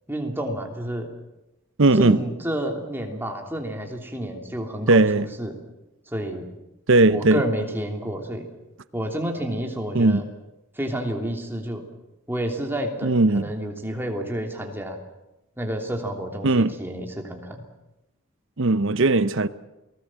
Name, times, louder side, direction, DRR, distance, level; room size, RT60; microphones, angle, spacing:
voice 1, 0.1-1.1 1.9-5.5 6.1-6.5 7.1-8.5 8.9-10.2 10.7-11.8 12.3-15.0 15.6-17.6, right 1 dB, 10° right, 3.0 m, -30 dB
voice 2, 1.8-2.2 4.9-5.3 6.9-7.4 9.9-10.2 13.0-13.5 16.4-16.7 18.6-19.5, right 2 dB, 55° right, 0.8 m, -18 dB
29.0 x 19.5 x 7.5 m
head